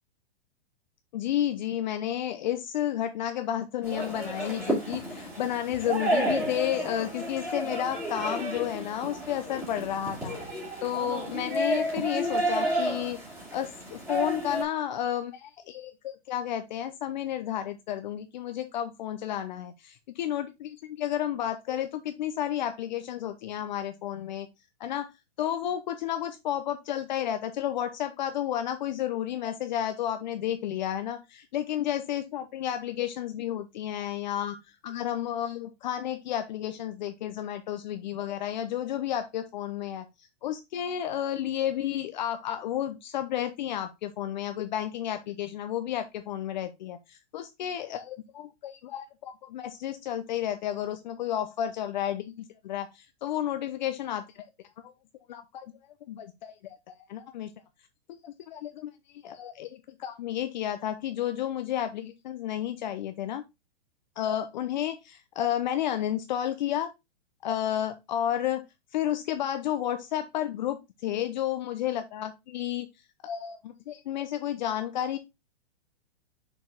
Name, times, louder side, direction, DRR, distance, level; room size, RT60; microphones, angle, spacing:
voice 1, 1.1-13.2 13.5-24.5 24.8-25.1 25.4-31.2 31.5-54.5 54.8-54.9 55.3-55.7 56.1-57.5 58.2-58.9 59.2-63.4 64.2-66.9 67.4-68.7 68.9-72.9 73.2-75.2, left 11 dB, 45° left, 8 dB, 0.7 m, -32 dB
sound 1, 3.8-14.6, right 1 dB, 10° right, 2.6 m, -31 dB
6.1 x 4.6 x 3.6 m, 0.22 s
hypercardioid pair, 160°, 31 cm